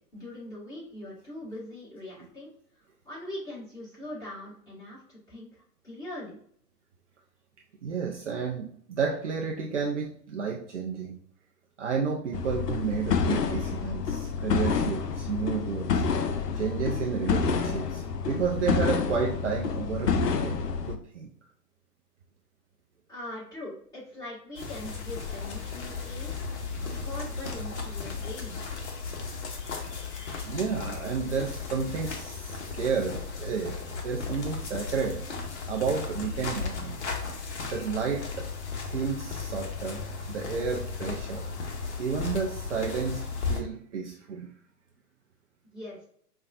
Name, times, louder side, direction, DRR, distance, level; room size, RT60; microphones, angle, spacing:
voice 1, 0.1-2.5 3.0-6.4 23.1-26.3 26.8-28.6 45.7-46.0, left 1 dB, 5° left, -10 dB, 1.4 m, -41 dB
voice 2, 7.8-11.2 11.8-16.0 16.6-20.6 20.9-21.3 30.4-35.2 35.7-37.0 37.7-38.5 38.8-40.0 40.3-44.5, right 6 dB, 50° right, -1 dB, 0.5 m, -31 dB
sound 1, 12.3-21.0, left 5 dB, 75° left, 0.6 m, -28 dB
sound 2, 24.6-43.6, left 4 dB, 45° left, 0.8 m, -35 dB
5.1 x 2.3 x 2.5 m, 0.64 s
figure-of-eight pair, 125°, 49 cm